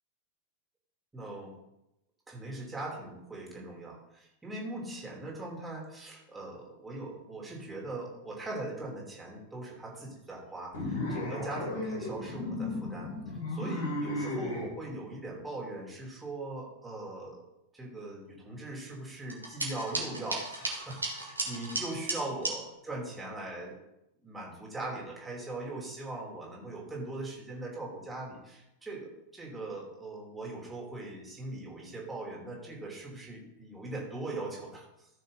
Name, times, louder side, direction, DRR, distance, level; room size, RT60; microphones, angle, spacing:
voice 1, 1.1-1.5 2.3-17.4 17.7-23.7 24.2-35.1, right 2 dB, 10° right, -2 dB, 3.0 m, -40 dB
sound 1, 10.7-14.7, left 1 dB, 60° left, 3.6 m, -34 dB
sound 2, 19.3-22.6, right 2 dB, 80° right, 2.3 m, -35 dB
14.5 x 6.4 x 4.0 m, 0.86 s
figure-of-eight pair, 90°, 0 cm